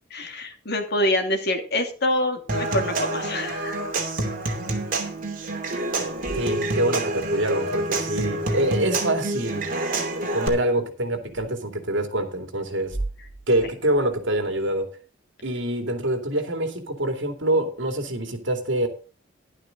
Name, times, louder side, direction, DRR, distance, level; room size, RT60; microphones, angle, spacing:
voice 1, 0.1-3.8, left 1 dB, 55° left, 4 dB, 2.7 m, -26 dB
Human voice / Acoustic guitar / Percussion, 2.5-10.5, right 2 dB, 45° right, 2.8 m, -27 dB
voice 2, 6.3-9.7 10.3-13.0 13.5-15.0 15.4-18.9, right 1 dB, 70° right, 6 dB, 2.5 m, -25 dB
sound 1, 12.8-14.7, right 2 dB, 20° right, 4.3 m, -38 dB
11.5 x 11.5 x 3.8 m, 0.37 s
head